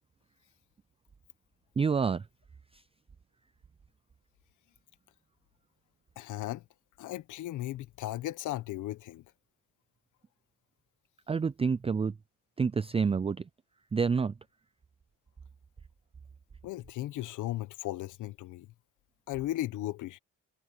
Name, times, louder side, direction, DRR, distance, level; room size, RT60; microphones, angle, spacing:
voice 1, 1.8-2.3 2.7-2.8 11.3-12.2 12.6-13.5 13.9-14.4, right 5 dB, 20° right, 0.4 m, -28 dB
voice 2, 6.2-6.6 7.0-9.2 16.6-18.7 19.3-20.2, left 15 dB, 85° left, 1.0 m, -36 dB
cardioid pair, 90°, 30 cm